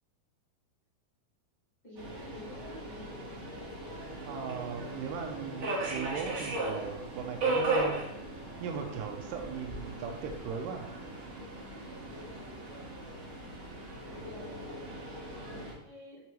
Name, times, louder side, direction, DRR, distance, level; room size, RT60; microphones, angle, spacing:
voice 1, 1.8-3.1 14.1-14.6 15.5-16.2, equal, 25° left, -9 dB, 0.6 m, -49 dB
Subway metro underground, 2.0-15.7, right 2 dB, 60° right, 1.1 m, -37 dB
voice 2, 4.2-8.0 8.6-10.9, right 6 dB, 80° right, 3 dB, 2.2 m, -38 dB
8.2 x 3.7 x 3.1 m, 0.88 s
omnidirectional pair, 4.1 m